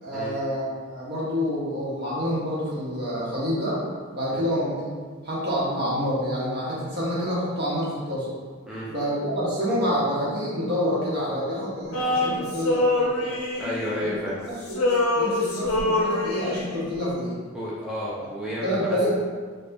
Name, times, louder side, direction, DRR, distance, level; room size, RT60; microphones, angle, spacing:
voice 1, 0.0-3.8 4.1-4.9 5.2-8.3 8.9-13.3 14.0-14.1 14.5-17.4 18.6-19.1, equal, 50° right, -7 dB, 1.1 m, -27 dB
Male singing, 11.9-14.4 14.7-16.8, left 2 dB, 70° left, 0.6 m, -25 dB
voice 2, 13.6-14.4 17.5-19.1, equal, 5° right, -9 dB, 0.5 m, -31 dB
4.4 x 2.3 x 2.6 m, 1.5 s
head